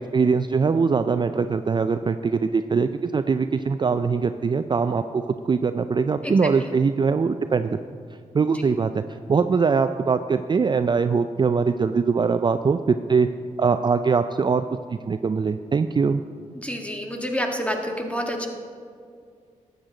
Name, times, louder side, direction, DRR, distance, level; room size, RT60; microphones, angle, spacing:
voice 1, 0.0-7.8 8.3-9.0 9.3-13.3 13.6-14.6 15.1-16.2, right 5 dB, 35° right, 10 dB, 0.4 m, -22 dB
voice 2, 16.5-18.5, equal, 10° left, 2 dB, 1.6 m, -28 dB
12.5 x 8.1 x 3.9 m, 2.2 s
cardioid pair, 50°, 13 cm